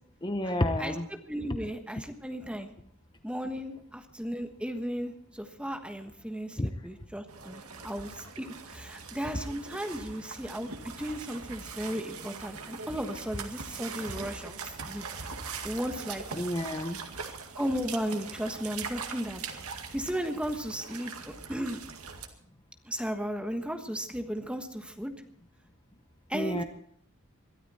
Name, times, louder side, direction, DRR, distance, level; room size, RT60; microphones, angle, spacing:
voice 1, 0.2-1.1 6.6-6.7 9.3-9.4 16.3-17.0 26.3-26.6, left 1 dB, 20° left, 7 dB, 1.0 m, -30 dB
voice 2, 1.3-2.7 3.2-15.0 15.6-16.2 17.6-19.4 19.9-21.8 22.8-25.1 26.3-26.6, equal, 5° right, 6 dB, 1.4 m, -35 dB
sound 1, 7.3-22.3, right 5 dB, 90° right, 2.1 m, -42 dB
22.5 x 13.0 x 4.3 m, 0.63 s
head